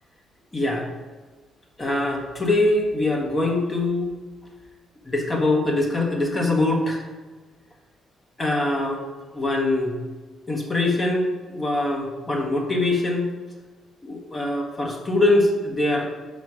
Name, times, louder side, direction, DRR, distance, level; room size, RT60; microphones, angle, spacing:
voice 1, 0.5-0.9 1.8-4.1 5.1-7.0 8.4-9.0 9.3-9.9 10.5-13.3 14.0-16.2, left 2 dB, 30° left, 0 dB, 1.3 m, -23 dB
6.2 x 4.8 x 4.9 m, 1.3 s
cardioid pair, 90°, 0 cm